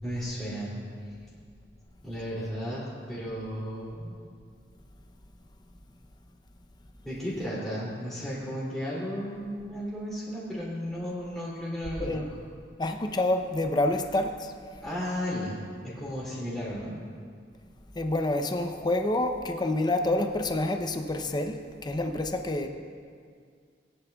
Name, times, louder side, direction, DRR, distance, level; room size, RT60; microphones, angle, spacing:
voice 1, 0.0-0.7 2.0-4.2 7.0-12.2 14.8-17.0, equal, ahead, -10 dB, 2.7 m, -34 dB
voice 2, 12.8-14.5 17.9-22.7, left 1 dB, 25° left, 6 dB, 0.6 m, -28 dB
18.0 x 11.0 x 2.3 m, 2.1 s
head